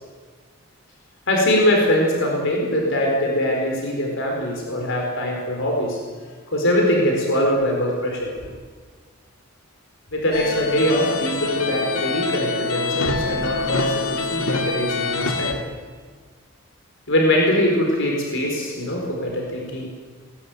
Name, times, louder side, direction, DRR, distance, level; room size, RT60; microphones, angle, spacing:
voice 1, 1.3-6.0 6.5-8.3 10.1-15.6 17.1-19.9, left 1 dB, 60° left, 0 dB, 4.5 m, -22 dB
sound 1, 10.3-15.5, left 3 dB, 80° left, 2.3 m, -25 dB
19.5 x 18.0 x 9.3 m, 1.5 s
head